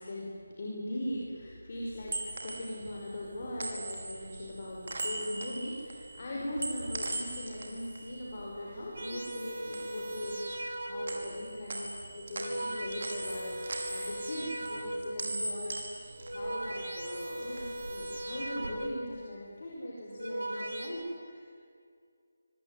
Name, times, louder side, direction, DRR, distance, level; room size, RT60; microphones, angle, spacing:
voice 1, 0.0-21.5, left 1 dB, 40° left, -3 dB, 5.6 m, -40 dB
sound 1, 1.8-9.1 9.4-10.8 11.1-17.1 17.4-18.7, right 2 dB, 60° right, 5.4 m, -40 dB
sound 2, 9.0-11.4 12.1-15.3 16.0-19.2 19.9-20.9, right 1 dB, 85° right, 5.5 m, -39 dB
25.0 x 24.0 x 9.6 m, 2.3 s
figure-of-eight pair, 175°, 0 cm